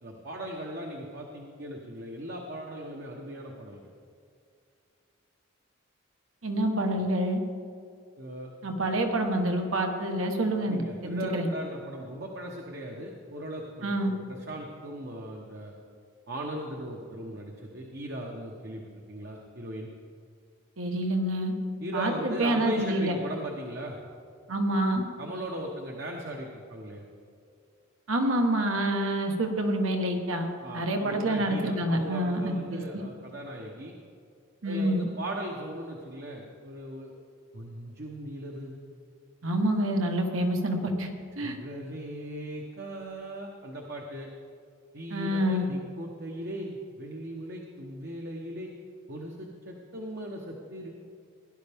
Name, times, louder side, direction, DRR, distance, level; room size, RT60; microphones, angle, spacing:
voice 1, 0.0-3.9 8.2-8.5 10.6-15.7 16.3-18.8 19.1-19.9 21.8-24.0 25.2-27.0 30.6-33.9 34.6-37.1 37.5-38.8 41.4-44.3 44.9-48.7 49.1-50.9, right 1 dB, 50° right, 0 dB, 1.0 m, -38 dB
voice 2, 6.4-7.4 8.6-11.5 13.8-14.1 20.8-21.5 21.9-23.1 24.5-25.0 28.1-30.5 30.7-33.0 34.6-35.1 39.4-41.1 41.4-41.6 45.1-45.7, right 1 dB, 80° right, 4 dB, 1.4 m, -27 dB
16.5 x 11.0 x 3.5 m, 2.4 s
head